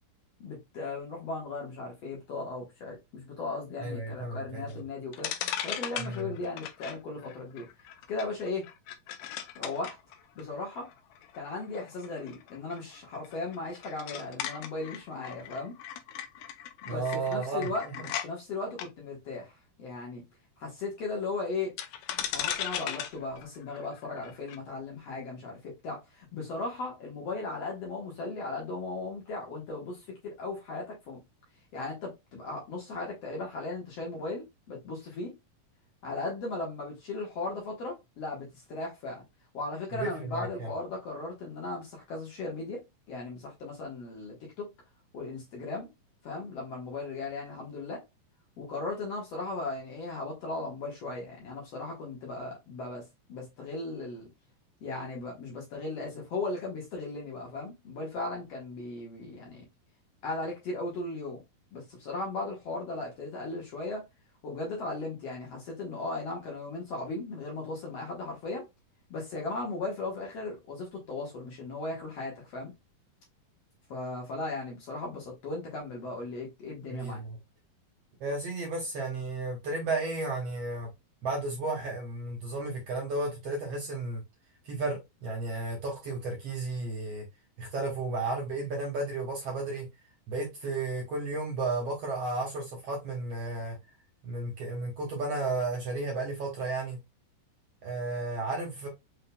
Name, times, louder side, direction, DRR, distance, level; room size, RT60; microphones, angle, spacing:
voice 1, 0.4-5.3 5.6-7.7 8.1-8.7 9.6-10.0 10.4-10.9 11.3-15.8 16.8-17.9 18.2-19.5 19.8-20.2 20.6-21.8 22.3-31.2 31.7-35.3 36.0-39.2 39.5-42.8 43.1-44.7 45.1-45.9 46.2-48.0 48.6-53.0 53.3-54.3 54.8-59.6 60.2-61.4 61.7-64.0 64.4-68.6 69.1-72.7 73.9-77.2, left 3 dB, 55° left, 2.1 m, -37 dB
voice 2, 3.8-4.8 6.0-6.3 16.9-17.7 39.9-40.7 76.9-77.4 78.2-80.9 81.2-84.2 84.7-87.2 87.6-89.9 90.3-93.8 94.2-97.0 97.8-98.9, right 2 dB, 60° right, 1.8 m, -33 dB
sound 1, 4.7-4.8 5.1-18.3 18.7-18.9 21.8-24.6, left 10 dB, 80° left, 2.1 m, -38 dB
5.7 x 3.7 x 2.2 m
omnidirectional pair, 4.0 m